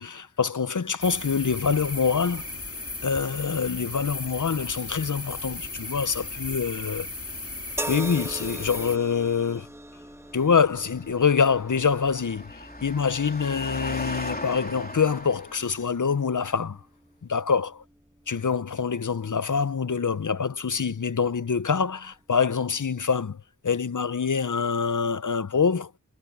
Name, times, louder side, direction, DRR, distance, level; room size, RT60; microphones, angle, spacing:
voice 1, 0.0-2.5 3.0-7.1 7.9-9.7 10.3-16.8 17.3-17.7 18.3-25.9, left 6 dB, 65° left, 0.7 m, -25 dB
sound 1, 1.0-9.0, left 2 dB, 45° left, 1.7 m, -36 dB
sound 2, 7.8-21.1 22.0-22.2, right 1 dB, 10° right, 2.3 m, -42 dB
Engine, 10.4-16.1, left 1 dB, 30° left, 3.6 m, -38 dB
wide cardioid pair, 40°, 33 cm